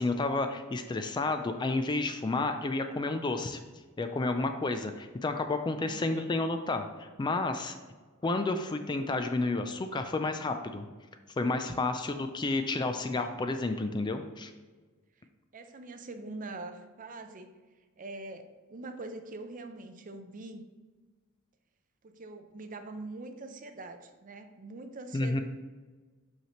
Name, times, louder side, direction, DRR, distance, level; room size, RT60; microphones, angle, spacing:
voice 1, 0.0-3.6 4.0-7.7 8.2-10.9 11.4-14.5 25.1-25.4, left 2 dB, 20° left, 7 dB, 0.3 m, -31 dB
voice 2, 5.8-6.3 15.5-17.5 18.0-20.6 22.0-25.4, right 2 dB, 40° right, 7 dB, 0.5 m, -43 dB
5.7 x 5.6 x 3.0 m, 1.4 s
head